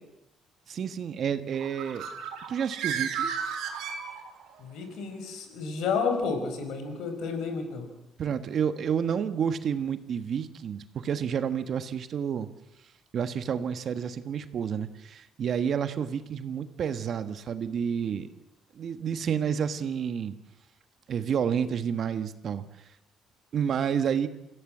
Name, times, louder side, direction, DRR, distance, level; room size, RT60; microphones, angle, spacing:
voice 1, 0.7-2.0 2.5-3.5 8.2-12.5 13.1-18.3 18.7-20.3 21.1-22.6 23.5-24.3, right 7 dB, 50° right, 11 dB, 1.4 m, -30 dB
Bird, 1.5-4.6, right 7 dB, 80° right, 4.1 m, -33 dB
voice 2, 4.6-7.9, left 5 dB, 80° left, 6 dB, 5.1 m, -31 dB
27.0 x 16.0 x 7.4 m, 0.86 s
cardioid pair, 130°, 0 cm